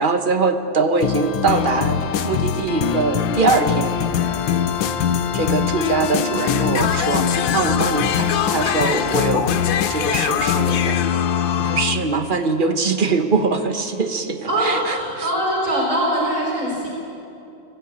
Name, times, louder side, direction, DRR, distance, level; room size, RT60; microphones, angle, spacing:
voice 1, 0.0-4.0 5.3-9.5 9.9-11.0 11.6-15.3, right 4 dB, 35° right, 7 dB, 1.0 m, -22 dB
sound 1, 1.0-12.1, left 8 dB, 90° left, 1.6 m, -22 dB
voice 2, 14.4-16.9, right 1 dB, 20° right, -2 dB, 4.0 m, -22 dB
20.0 x 15.5 x 8.5 m, 2.7 s
omnidirectional pair, 2.0 m